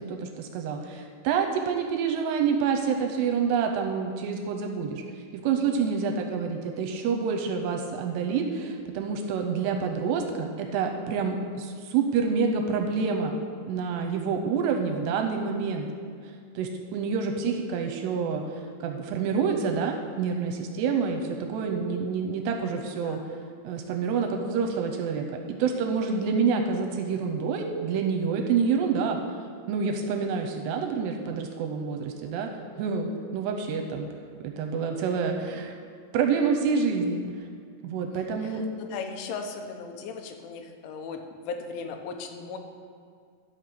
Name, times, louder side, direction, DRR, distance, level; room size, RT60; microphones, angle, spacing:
voice 1, 0.0-5.0 5.3-13.3 13.7-15.9 16.6-18.4 18.8-23.2 23.6-29.2 29.7-32.5 32.8-34.1 34.4-35.7 36.1-37.2 37.8-38.6, right 5 dB, 80° right, 4 dB, 2.6 m, -27 dB
voice 2, 21.6-22.0 22.7-23.3 38.4-42.6, left 5 dB, 85° left, 4 dB, 3.4 m, -38 dB
12.5 x 5.7 x 6.7 m, 2.2 s
omnidirectional pair, 5.4 m